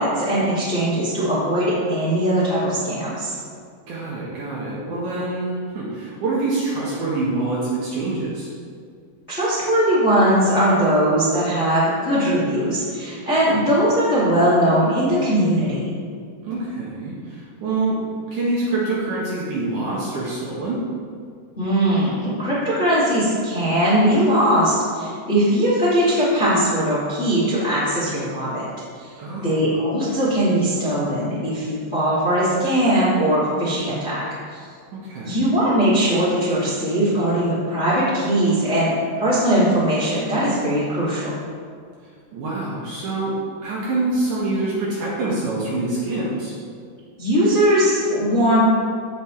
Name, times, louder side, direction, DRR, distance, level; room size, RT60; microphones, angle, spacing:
voice 1, 0.0-3.4 9.3-15.8 21.6-28.7 29.0-29.1 29.4-34.2 34.5-34.6 35.2-38.9 39.2-41.3 47.2-48.7, right 1 dB, 25° left, -10 dB, 1.5 m, -20 dB
voice 2, 3.9-8.5 13.4-13.6 16.4-18.0 18.3-20.8 29.2-29.7 34.9-35.5 42.3-43.3 43.6-46.5, right 2 dB, 60° right, -6 dB, 2.3 m, -26 dB
15.5 x 5.4 x 3.2 m, 2.2 s
omnidirectional pair, 4.7 m